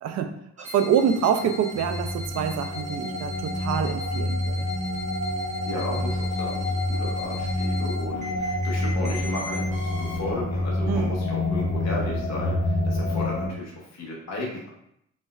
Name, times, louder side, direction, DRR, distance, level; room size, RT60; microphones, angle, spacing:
sound 1, 0.6-10.2, left 1 dB, 25° right, 0.8 m, -40 dB
voice 1, 0.6-4.7 10.9-11.2, right 7 dB, 60° right, 7 dB, 0.4 m, -26 dB
sound 2, 1.5-13.5, left 1 dB, 35° left, 0.4 m, -28 dB
voice 2, 5.6-14.7, left 1 dB, 60° left, -3 dB, 1.0 m, -34 dB
4.1 x 2.1 x 2.3 m, 0.74 s
cardioid pair, 90°, 30 cm